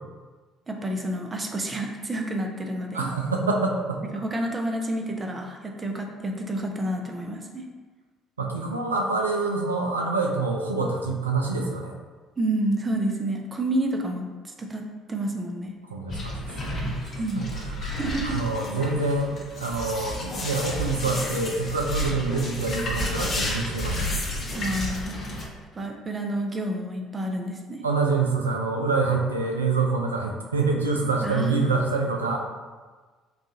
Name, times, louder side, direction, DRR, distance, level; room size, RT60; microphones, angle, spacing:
voice 1, 0.7-3.1 4.1-7.7 12.4-15.7 17.2-17.5 17.9-18.4 24.5-25.3 25.7-27.8 31.2-31.7, right 1 dB, 25° right, 2 dB, 0.5 m, -29 dB
voice 2, 2.9-4.0 8.4-12.0 15.9-16.5 17.4-17.9 18.2-24.1 27.8-32.4, right 3 dB, 80° right, 1 dB, 0.3 m, -26 dB
sound 1, 16.1-25.4, left 1 dB, 45° left, 0.7 m, -31 dB
3.9 x 2.4 x 2.7 m, 1.4 s
figure-of-eight pair, 50°, 0 cm